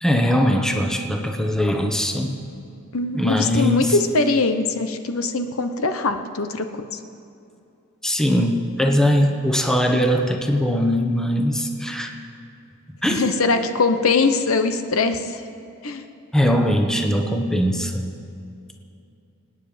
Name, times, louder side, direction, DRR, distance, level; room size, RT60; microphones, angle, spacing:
voice 1, 0.0-2.4 3.1-4.0 8.0-12.1 13.0-13.3 16.3-18.1, equal, 5° left, 3 dB, 1.1 m, -21 dB
voice 2, 2.9-6.8 13.1-15.4 15.8-16.0, left 3 dB, 80° left, 8 dB, 1.0 m, -22 dB
26.0 x 9.4 x 5.1 m, 2.6 s
head